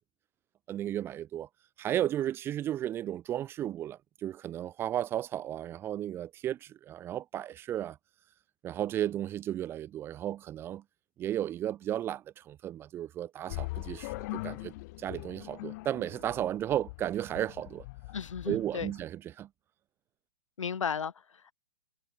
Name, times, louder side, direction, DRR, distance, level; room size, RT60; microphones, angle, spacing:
voice 1, 0.7-1.5 1.8-8.0 8.6-10.8 11.2-14.7 15.0-17.9 18.5-19.5, right 11 dB, 15° right, 0.7 m, -34 dB
sound 1, 13.5-19.0, left 22 dB, 35° left, 2.8 m, -41 dB
voice 2, 18.1-18.9 20.6-21.5, left 6 dB, 85° left, 3.0 m, -35 dB
hypercardioid pair, 150°, 16 cm